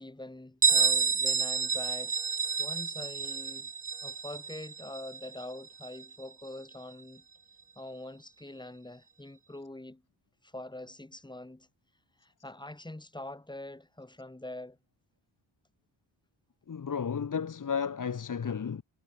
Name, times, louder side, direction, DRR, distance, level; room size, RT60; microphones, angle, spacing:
voice 1, 0.0-3.7 4.0-7.2 7.8-10.0 10.4-11.7 12.2-14.8, left 1 dB, 10° left, 3.5 m, -44 dB
Bell, 0.6-6.1, right 5 dB, 20° right, 0.3 m, -29 dB
voice 2, 16.7-18.8, left 6 dB, 45° left, 2.1 m, -33 dB
wide cardioid pair, 145°, 45 cm